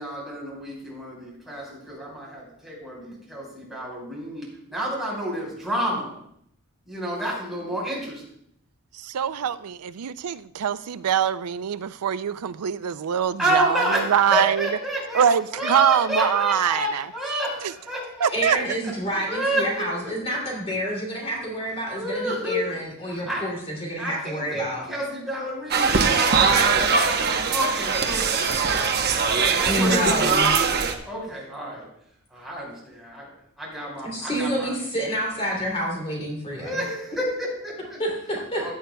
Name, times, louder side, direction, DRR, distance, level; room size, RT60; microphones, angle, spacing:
voice 1, 0.0-6.1 6.9-8.2 13.4-15.2 15.5-18.9 19.3-20.4 21.9-23.4 24.0-28.9 29.2-31.9 32.3-34.7 36.6-38.0 38.5-38.7, right 1 dB, ahead, -5 dB, 4.8 m, -30 dB
voice 2, 8.9-14.7 15.1-17.1 18.2-18.6 28.4-28.5, right 8 dB, 90° right, 15 dB, 0.4 m, -23 dB
voice 3, 18.3-24.8 29.7-30.5 34.0-36.8 38.0-38.7, equal, 25° left, -2 dB, 2.8 m, -28 dB
sound 1, 25.7-31.0, right 5 dB, 50° right, 0.9 m, -21 dB
16.0 x 10.0 x 2.3 m, 0.73 s
head